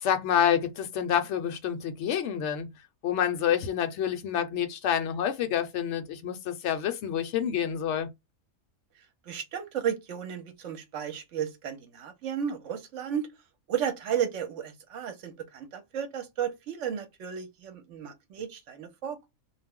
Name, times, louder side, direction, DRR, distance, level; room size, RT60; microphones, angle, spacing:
voice 1, 0.0-2.7 3.0-8.1, left 9 dB, 65° left, 0.8 m, -28 dB
voice 2, 9.3-13.3 13.7-19.3, right 8 dB, 65° right, 0.9 m, -33 dB
2.4 x 2.1 x 3.6 m
omnidirectional pair, 1.5 m